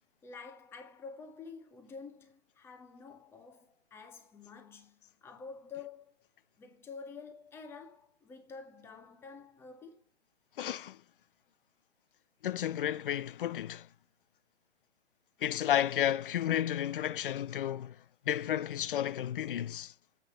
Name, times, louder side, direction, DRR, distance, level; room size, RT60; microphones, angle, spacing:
voice 1, 0.2-6.3 6.6-10.1, left 5 dB, 5° left, 0.9 m, -49 dB
voice 2, 10.6-11.0 12.4-13.9 15.4-18.0 18.3-19.9, left 11 dB, 50° left, 0.4 m, -32 dB
8.1 x 5.4 x 5.4 m
hypercardioid pair, 145°, 35 cm